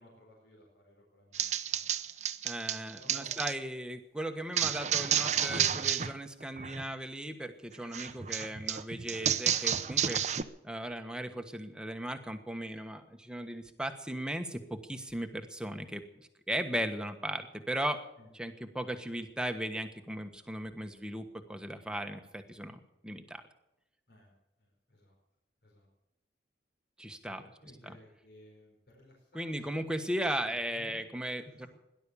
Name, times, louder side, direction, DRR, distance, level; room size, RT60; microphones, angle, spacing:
voice 1, 0.0-2.1 2.9-3.6 18.2-18.3 24.1-24.3 24.6-25.1 25.6-25.9 27.3-29.5 29.8-31.0 31.4-31.7, equal, 60° left, 0 dB, 4.7 m, -57 dB
sound 1, 1.3-3.5 4.6-6.1 6.4-6.8 7.9-10.4, right 9 dB, 40° right, 0.7 m, -31 dB
voice 2, 2.4-10.4 10.6-18.0 18.3-23.4 27.0-27.4 27.8-27.9 29.3-31.7, right 1 dB, 5° right, 7 dB, 1.3 m, -37 dB
18.0 x 11.5 x 7.0 m, 0.92 s
head